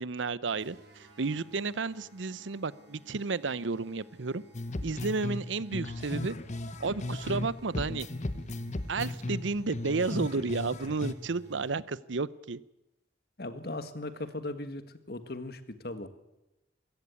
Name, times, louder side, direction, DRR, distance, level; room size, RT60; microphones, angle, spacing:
voice 1, 0.0-4.4 4.8-6.4 6.8-8.1 8.9-12.6, right 4 dB, 85° right, 19 dB, 0.7 m, -32 dB
sound 1, 0.6-12.0, right 1 dB, 65° right, 6.7 m, -55 dB
sound 2, 4.5-7.5 7.7-11.1, left 2 dB, 40° left, 1.0 m, -36 dB
Truck / Idling, 5.8-11.4, equal, 35° right, 2.5 m, -58 dB
voice 2, 13.4-14.8 15.1-16.1, left 2 dB, 55° left, 11 dB, 1.6 m, -38 dB
23.0 x 16.0 x 8.4 m, 0.94 s
head